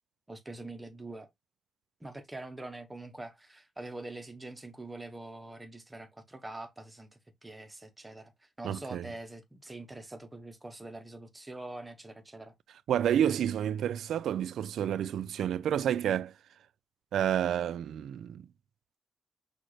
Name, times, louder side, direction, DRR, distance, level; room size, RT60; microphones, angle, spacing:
voice 1, 0.3-1.3 2.0-12.5, right 2 dB, 15° right, 0.8 m, -44 dB
voice 2, 8.6-9.1 12.9-16.3 17.1-18.5, right 10 dB, 90° right, 0.3 m, -29 dB
6.2 x 2.4 x 3.1 m
wide cardioid pair, 155°, 0 cm